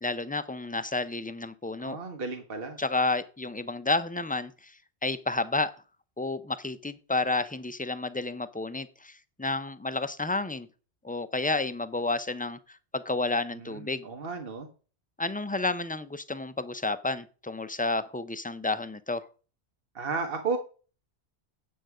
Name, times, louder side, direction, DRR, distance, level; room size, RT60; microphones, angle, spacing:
voice 1, 0.0-2.0 2.8-4.7 5.0-5.7 6.2-10.7 11.0-14.1 15.2-19.3, left 3 dB, 15° left, 13 dB, 0.4 m, -31 dB
voice 2, 1.8-2.8 13.6-14.7 19.9-20.6, right 4 dB, 60° right, 4 dB, 1.7 m, -33 dB
9.1 x 7.8 x 4.8 m, 0.36 s
omnidirectional pair, 1.1 m